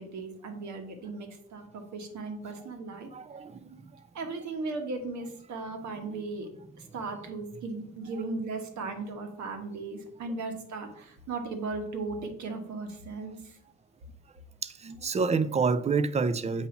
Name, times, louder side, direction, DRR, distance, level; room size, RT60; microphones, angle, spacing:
voice 1, 0.0-3.1 4.1-6.5 6.8-13.6, right 3 dB, 70° right, 1.3 m, -37 dB
voice 2, 3.1-4.0 14.6-16.7, right 4 dB, 20° right, 0.4 m, -28 dB
7.0 x 2.7 x 5.8 m
cardioid pair, 90°, 30 cm